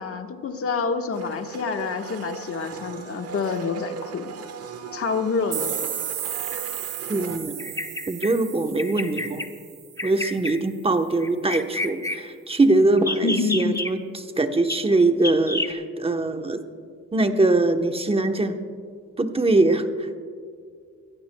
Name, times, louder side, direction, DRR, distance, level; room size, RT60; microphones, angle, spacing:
voice 1, 0.0-4.5 4.9-5.9 13.2-13.8, left 4 dB, 50° left, 5 dB, 1.4 m, -27 dB
Domestic sounds home sounds, 1.1-7.4, right 6 dB, 55° right, 1.3 m, -38 dB
sound 1, 5.5-10.2, right 10 dB, 85° right, 2.2 m, -34 dB
voice 2, 7.1-7.6 8.1-9.4 10.0-14.0 14.4-16.6 17.1-18.6 19.2-20.2, right 2 dB, 20° right, 7 dB, 1.0 m, -22 dB
Bird vocalization bird call bird song, 7.6-8.3 8.8-9.5 10.0-10.6 11.2-12.2 13.0-13.9 14.7-14.8 15.2-15.7, left 2 dB, 10° left, 1.0 m, -29 dB
24.0 x 15.5 x 2.3 m, 2.2 s
cardioid pair, 90°, 30 cm